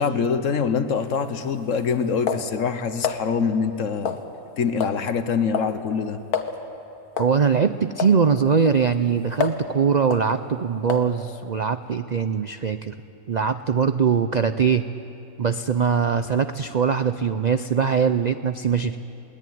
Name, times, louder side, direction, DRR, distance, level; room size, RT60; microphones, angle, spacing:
voice 1, 0.0-4.2 4.6-6.2, left 6 dB, 60° left, 11 dB, 1.3 m, -24 dB
sound 1, 0.9-3.2 4.0-4.5 4.8-5.0 5.3-5.8 6.0-6.1 6.3-6.6 7.2-7.4 8.0-8.2 8.7-9.7 10.1-10.3 10.9-11.2, left 7 dB, 90° left, 1.8 m, -30 dB
voice 2, 7.2-12.9 13.3-14.9 15.4-19.0, right 6 dB, 55° right, 10 dB, 0.4 m, -22 dB
22.0 x 19.0 x 9.3 m, 2.8 s
omnidirectional pair, 1.5 m